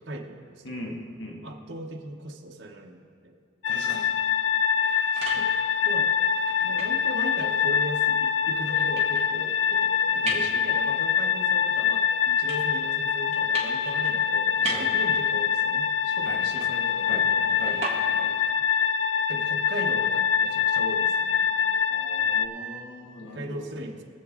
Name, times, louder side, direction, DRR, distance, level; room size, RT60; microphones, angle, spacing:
voice 1, 0.0-1.0 1.4-3.3 5.1-5.5 5.8-6.1 6.6-18.2 19.3-21.5 23.2-24.0, right 1 dB, 70° right, 1 dB, 1.0 m, -38 dB
voice 2, 0.6-1.4 3.7-4.1 10.2-10.4 14.7-14.9 16.2-16.4 17.1-17.2 17.6-17.8 18.1-18.3 21.9-23.7, left 1 dB, 75° left, -1 dB, 1.6 m, -39 dB
sound 1, 3.6-22.5, left 7 dB, 90° left, 0.5 m, -25 dB
sound 2, 4.6-18.5, right 3 dB, 35° right, 1.8 m, -40 dB
21.5 x 7.3 x 3.7 m, 2.2 s
head